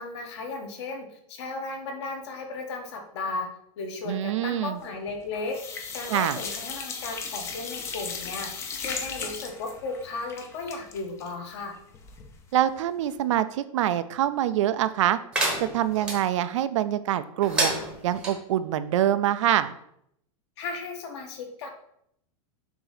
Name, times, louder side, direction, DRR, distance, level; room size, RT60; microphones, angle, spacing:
voice 1, 0.0-3.5 3.8-5.5 5.9-8.5 8.7-11.7 20.6-21.7, left 3 dB, 50° left, 3 dB, 1.4 m, -35 dB
voice 2, 4.1-4.8 6.1-6.4 12.5-15.2 15.6-17.7 18.0-19.7, right 12 dB, 60° right, 13 dB, 0.4 m, -25 dB
sound 1, 4.8-5.2 5.5-12.4 12.7-12.8 13.1-13.2, left 5 dB, 15° left, 0.5 m, -37 dB
sound 2, 15.3-16.2 17.4-18.3, right 2 dB, 5° right, 0.9 m, -28 dB
6.8 x 2.8 x 5.7 m, 0.73 s
supercardioid pair, 170°, 18 cm